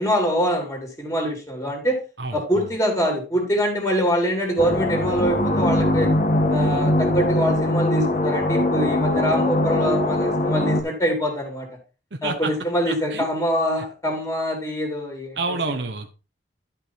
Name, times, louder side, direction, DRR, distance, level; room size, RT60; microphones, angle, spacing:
voice 1, 0.0-2.0 2.3-6.1 6.5-11.7 12.2-15.4, equal, 15° left, 2 dB, 2.9 m, -24 dB
voice 2, 2.2-2.7 12.1-12.5 12.9-13.3 15.3-16.2, right 3 dB, 75° right, 4 dB, 1.1 m, -29 dB
sound 1, 4.6-10.8, left 1 dB, 45° left, 2.0 m, -21 dB
12.0 x 5.5 x 4.5 m, 0.33 s
head